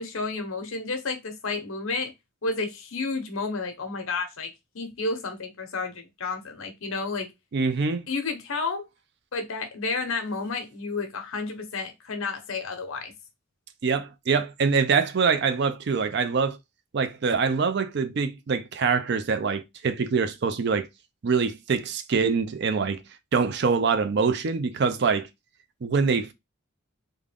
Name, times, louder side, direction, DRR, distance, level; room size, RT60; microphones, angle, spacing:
voice 1, 0.0-2.1 2.4-7.3 8.1-8.8 9.3-13.1, left 3 dB, 70° left, 0.9 m, -31 dB
voice 2, 7.5-8.1 13.8-16.6 16.9-20.9 21.2-23.0 23.3-25.3 25.8-26.3, right 5 dB, 50° right, 0.4 m, -24 dB
3.7 x 2.2 x 3.4 m
head